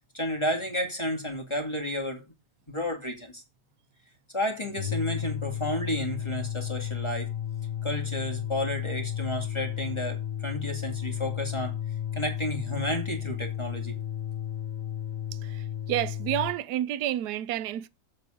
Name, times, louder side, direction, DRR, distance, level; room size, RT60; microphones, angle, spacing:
voice 1, 0.1-2.2 2.7-3.4 4.3-7.3 7.8-11.7 12.1-13.9, equal, 15° left, 2.2 m, -31 dB
sound 1, 4.6-16.6, left 10 dB, 55° left, 1.7 m, -33 dB
voice 2, 15.4-17.9, right 12 dB, 75° right, 1.2 m, -30 dB
7.8 x 7.5 x 5.1 m
omnidirectional pair, 1.8 m